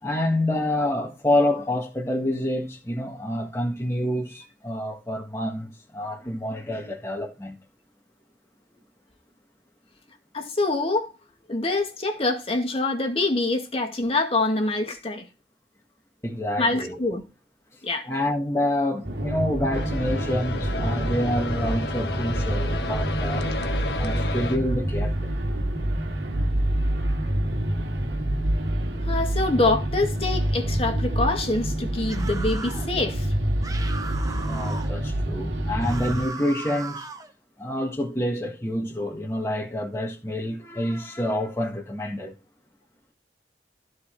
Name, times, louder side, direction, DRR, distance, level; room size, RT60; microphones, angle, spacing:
voice 1, 0.0-7.6 16.2-17.0 17.7-23.5 23.9-25.3 34.4-37.1 37.6-42.3, left 1 dB, 15° left, 1.6 m, -27 dB
voice 2, 10.3-11.1 11.5-15.3 16.6-17.2 17.8-18.1 29.0-33.3, left 2 dB, 35° left, 2.0 m, -25 dB
sound 1, 19.0-36.3, right 1 dB, 80° right, 2.4 m, -27 dB
sound 2, 19.7-24.6, left 2 dB, 65° left, 1.6 m, -33 dB
sound 3, 32.1-32.9 33.6-34.9 35.8-37.3, right 3 dB, 20° right, 1.2 m, -37 dB
14.0 x 4.9 x 4.4 m
head